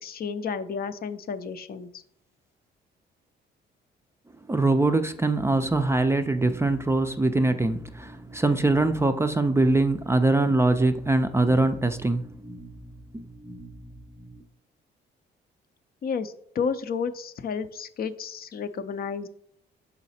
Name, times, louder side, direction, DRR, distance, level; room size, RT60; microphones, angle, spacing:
voice 1, 0.0-2.0 16.0-19.3, left 6 dB, 50° left, 0.5 m, -31 dB
voice 2, 4.5-12.3 13.1-13.2, right 2 dB, 15° right, 0.4 m, -23 dB
sound 1, 5.4-14.4, right 1 dB, 10° left, 0.8 m, -45 dB
6.1 x 4.1 x 4.2 m
cardioid pair, 90°, 20 cm